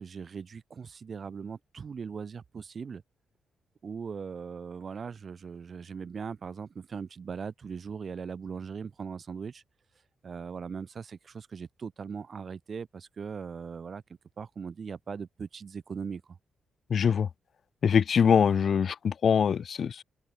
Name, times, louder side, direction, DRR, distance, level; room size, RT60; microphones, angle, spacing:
voice 1, 0.0-3.0 3.8-9.6 10.2-14.0 14.4-16.4, right 6 dB, 50° right, 4.8 m, -39 dB
voice 2, 16.9-17.3 17.8-20.0, left 7 dB, 60° left, 0.6 m, -23 dB
open air
supercardioid pair, 60°, 0 cm